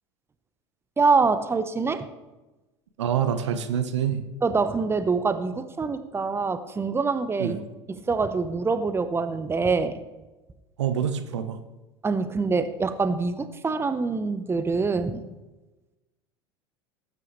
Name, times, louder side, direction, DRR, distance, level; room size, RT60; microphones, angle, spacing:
voice 1, 1.0-2.1 4.4-7.6 7.9-10.0 12.0-15.3, right 4 dB, 15° right, 11 dB, 0.9 m, -25 dB
voice 2, 3.0-4.2 7.4-7.7 10.8-11.6, right 8 dB, 75° right, 8 dB, 1.1 m, -26 dB
18.0 x 9.2 x 3.2 m, 1.1 s
figure-of-eight pair, 75°, 15 cm